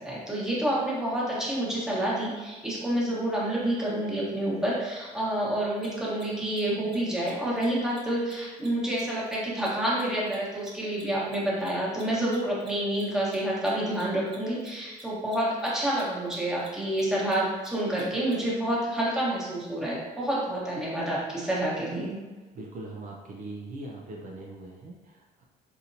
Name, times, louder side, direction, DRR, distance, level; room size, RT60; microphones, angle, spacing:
voice 1, 0.0-22.2, right 1 dB, 5° right, -7 dB, 1.1 m, -28 dB
Mechanisms, 5.8-5.9 6.1-6.2 6.5-6.6 6.9-7.0 7.2-7.3 7.6-7.7 7.9-8.0 8.3-11.0 11.3-18.3, right 2 dB, 30° right, 1.0 m, -50 dB
voice 2, 22.5-25.4, right 2 dB, 50° right, -2 dB, 0.5 m, -41 dB
4.3 x 2.7 x 2.6 m, 1.2 s
cardioid pair, 110°, 17 cm